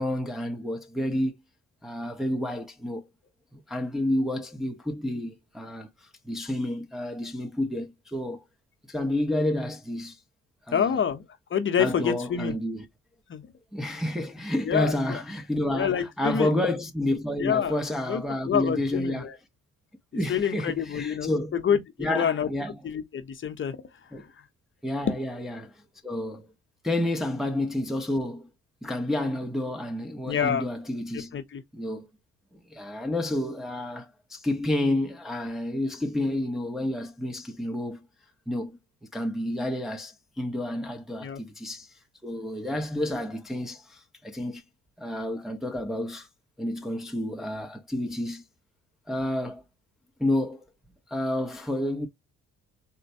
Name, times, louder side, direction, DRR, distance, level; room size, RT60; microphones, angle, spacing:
voice 1, 0.0-1.3 1.8-3.0 3.5-5.9 6.2-8.4 8.9-10.2 10.7-11.0 11.8-12.9 13.7-19.3 20.1-21.6 22.0-22.8 24.1-24.2 24.8-25.7 26.0-26.5 26.8-28.5 28.8-31.4 31.7-32.1 32.7-38.1 38.5-38.8 39.1-41.9 42.2-44.6 45.0-46.3 46.6-48.4 49.1-49.6 50.2-50.6 51.1-52.1, left 1 dB, ahead, 0.6 m, -30 dB
voice 2, 10.7-11.2 11.5-12.5 13.3-13.5 14.6-15.2 15.7-16.6 17.4-17.7 18.1-19.4 20.3-22.5 22.8-23.8 30.3-30.6 31.3-31.6 41.2-41.4, left 8 dB, 40° left, 0.7 m, -27 dB
4.0 x 2.2 x 2.6 m
cardioid pair, 90°, 30 cm